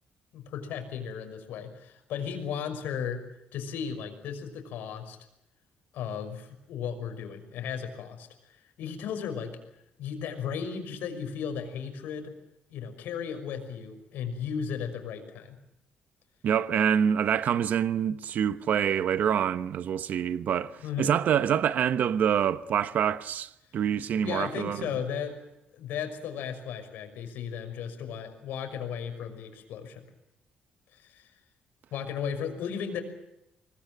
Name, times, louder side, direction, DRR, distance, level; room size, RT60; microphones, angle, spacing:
voice 1, 0.3-3.2 3.5-5.2 5.9-9.6 10.0-12.3 12.7-15.6 20.8-21.2 24.2-25.4 25.7-30.0 30.9-31.3 31.9-33.0, left 7 dB, 85° left, 5.9 m, -35 dB
voice 2, 16.4-24.9, right 8 dB, 60° right, 1.0 m, -26 dB
25.5 x 20.0 x 9.2 m
cardioid pair, 125°, 3 cm